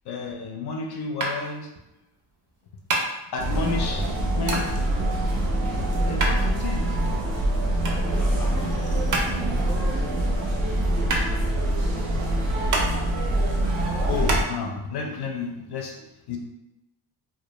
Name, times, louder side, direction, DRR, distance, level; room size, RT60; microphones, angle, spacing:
voice 1, 0.0-1.7 3.3-4.9 5.7-7.0 14.1-16.4, left 4 dB, 55° left, 1 dB, 0.5 m, -31 dB
sound 1, 1.2-14.4, right 2 dB, 45° right, 0.5 m, -31 dB
sound 2, 3.4-14.4, right 1 dB, 90° right, 0.8 m, -24 dB
voice 2, 8.0-12.5, equal, 5° left, -6 dB, 0.6 m, -41 dB
2.2 x 2.1 x 3.0 m, 0.93 s
wide cardioid pair, 145°, 47 cm